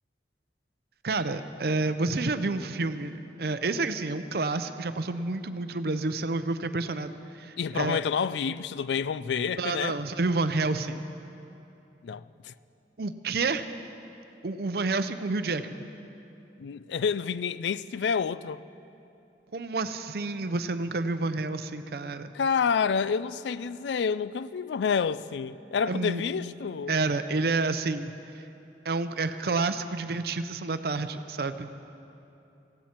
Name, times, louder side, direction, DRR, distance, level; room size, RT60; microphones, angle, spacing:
voice 1, 1.0-3.1 3.4-8.0 9.6-11.0 13.0-13.7 14.4-15.8 19.5-22.3 25.9-26.2 26.9-28.4 28.8-31.7, right 3 dB, 60° right, 0.6 m, -29 dB
voice 2, 7.6-10.0 12.0-12.5 16.6-18.6 22.3-26.9, left 6 dB, 80° left, 0.4 m, -29 dB
17.5 x 15.5 x 4.4 m
head